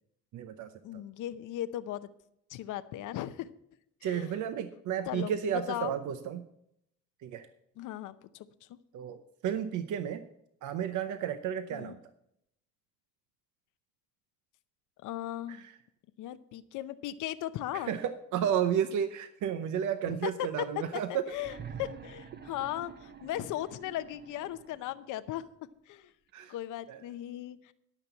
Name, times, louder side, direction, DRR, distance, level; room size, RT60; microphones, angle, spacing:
voice 1, 0.3-1.0 4.0-6.4 7.2-7.5 8.9-10.2 10.6-12.0 15.5-15.8 17.7-21.3 26.3-26.5 26.9-27.0, right 9 dB, 75° right, 10 dB, 0.8 m, -32 dB
voice 2, 0.8-2.1 2.5-3.5 4.0-4.3 5.1-5.3 5.7-5.9 7.8-8.8 11.7-11.9 15.0-15.7 16.2-17.9 20.1-20.3 20.8-20.9 21.1-25.5 25.9-26.1 26.5-27.7, left 13 dB, 90° left, 12 dB, 0.7 m, -37 dB
sound 1, 21.2-25.1 26.3-26.4, right 6 dB, 35° right, 0.9 m, -47 dB
12.5 x 6.1 x 7.1 m, 0.77 s
cardioid pair, 90°, 30 cm